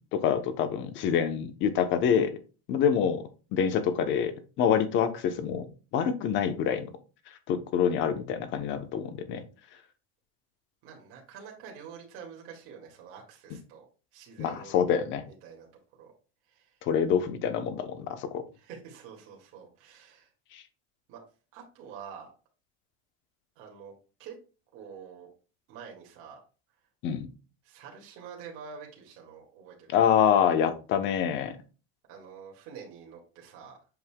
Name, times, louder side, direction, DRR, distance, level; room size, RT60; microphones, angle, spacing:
voice 1, 0.1-2.4 2.7-5.7 5.9-6.9 7.3-9.4 14.4-15.3 16.8-18.4 20.5-20.6 27.0-27.3 29.9-31.6, left 8 dB, 40° left, 10 dB, 0.8 m, -26 dB
voice 2, 10.8-14.7 15.3-15.7 16.0-16.1 16.5-16.8 18.6-20.3 21.1-21.2 21.5-22.3 23.6-23.9 24.2-24.3 24.7-25.3 25.7-26.4 27.6-30.0 32.1-33.8, right 6 dB, 45° right, -1 dB, 2.1 m, -47 dB
7.9 x 5.4 x 2.2 m, 0.33 s
cardioid pair, 165°, 30 cm